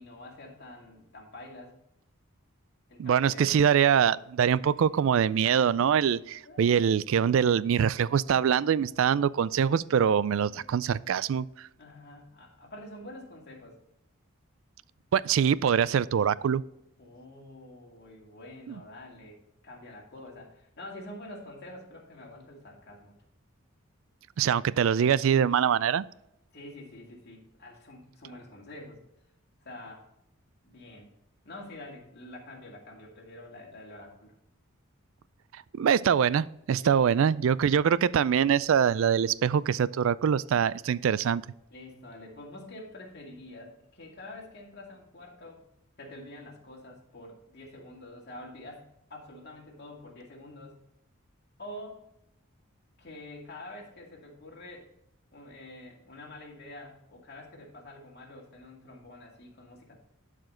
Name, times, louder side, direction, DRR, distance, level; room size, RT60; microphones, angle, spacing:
voice 1, 0.0-1.7 2.9-3.7 4.6-5.0 6.4-6.7 10.4-10.7 11.8-13.8 17.0-23.1 26.5-29.0 29.6-30.1 30.6-31.1 31.4-34.3 36.8-37.1 41.7-45.6 46.0-50.8 51.6-52.0 53.0-54.9 55.3-60.0, left 1 dB, 50° left, -1 dB, 2.3 m, -47 dB
voice 2, 3.0-11.7 15.1-16.6 18.7-18.8 24.4-26.0 35.7-41.4, right 8 dB, 60° right, 20 dB, 0.3 m, -24 dB
12.0 x 5.0 x 3.8 m, 0.83 s
head